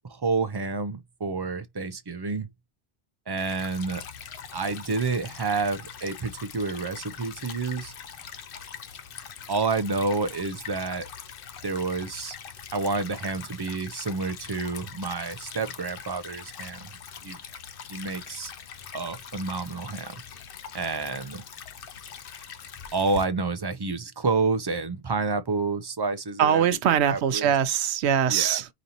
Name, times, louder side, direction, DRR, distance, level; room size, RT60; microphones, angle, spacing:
voice 1, 0.1-2.5 3.3-4.0 4.5-7.9 9.5-11.1 11.6-12.4 12.7-16.9 17.2-17.4 17.9-18.5 18.9-20.1 20.7-21.4 22.9-26.7 27.1-27.5 28.3-28.6, right 4 dB, 30° right, 0.5 m, -29 dB
Stream / Trickle dribble, 3.4-23.2, left 7 dB, 65° left, 0.8 m, -42 dB
voice 2, 26.4-28.7, right 9 dB, 90° right, 0.9 m, -22 dB
5.2 x 2.6 x 2.8 m
omnidirectional pair, 1.1 m